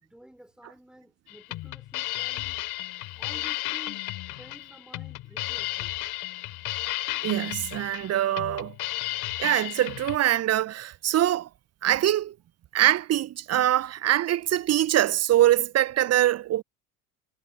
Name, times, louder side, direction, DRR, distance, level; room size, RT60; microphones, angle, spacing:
voice 1, 0.0-2.6 3.2-6.0, equal, ahead, 5.2 m, -51 dB
sound 1, 1.3-10.2, left 17 dB, 55° left, 3.3 m, -33 dB
voice 2, 7.2-8.8 9.4-11.5 11.8-12.3 12.7-16.6, right 13 dB, 35° right, 0.8 m, -23 dB
figure-of-eight pair, 60°, 46 cm